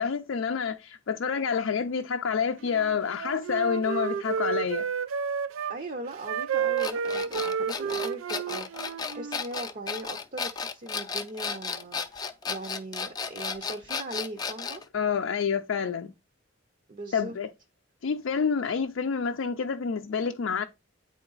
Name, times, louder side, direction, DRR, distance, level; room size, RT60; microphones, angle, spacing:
voice 1, 0.0-4.9 14.9-16.1 17.1-17.5 18.0-20.6, left 6 dB, 70° left, 0.4 m, -28 dB
Wind instrument woodwind instrument, 2.6-5.8 6.2-9.4, right 7 dB, 80° right, 0.4 m, -31 dB
voice 2, 5.7-14.8 16.9-17.4, right 1 dB, 40° right, 0.6 m, -39 dB
sound 1, 6.8-14.8, left 5 dB, 20° left, 0.5 m, -34 dB
8.9 x 3.8 x 3.9 m
head